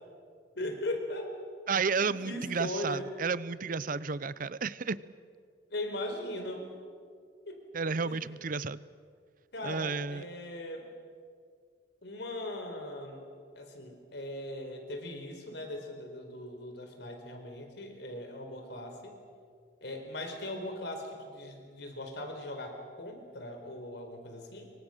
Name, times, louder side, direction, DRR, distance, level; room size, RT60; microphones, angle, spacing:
voice 1, 0.5-1.3 1.9-3.1 5.7-6.7 7.5-7.6 8.0-8.2 9.5-10.9 12.0-13.2 13.5-19.2 19.8-24.7, left 1 dB, 65° left, 5 dB, 4.3 m, -39 dB
voice 2, 1.7-5.0 7.7-8.8 9.6-10.3, right 5 dB, 50° right, 18 dB, 0.6 m, -32 dB
26.5 x 24.0 x 6.7 m, 2.1 s
head